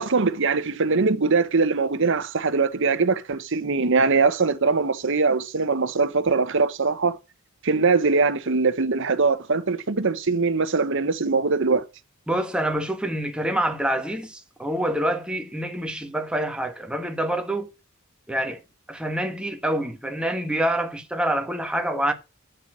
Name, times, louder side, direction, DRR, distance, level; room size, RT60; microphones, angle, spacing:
voice 1, 0.0-7.2 7.6-11.9, right 4 dB, 65° right, 1.0 m, -22 dB
voice 2, 12.3-17.7 18.3-18.6 18.9-22.1, right 1 dB, 5° right, 1.4 m, -26 dB
8.8 x 7.0 x 6.2 m
head